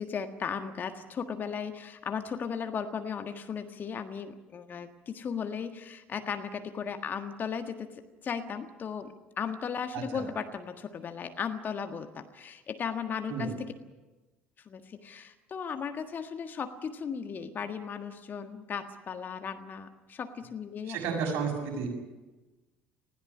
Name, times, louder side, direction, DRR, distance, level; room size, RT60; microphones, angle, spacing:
voice 1, 0.0-13.7 14.6-21.0, left 6 dB, 35° left, 7 dB, 1.6 m, -36 dB
voice 2, 20.9-21.9, right 5 dB, 50° right, 2 dB, 6.7 m, -32 dB
20.0 x 16.5 x 9.9 m, 1.2 s
figure-of-eight pair, 60°, 5 cm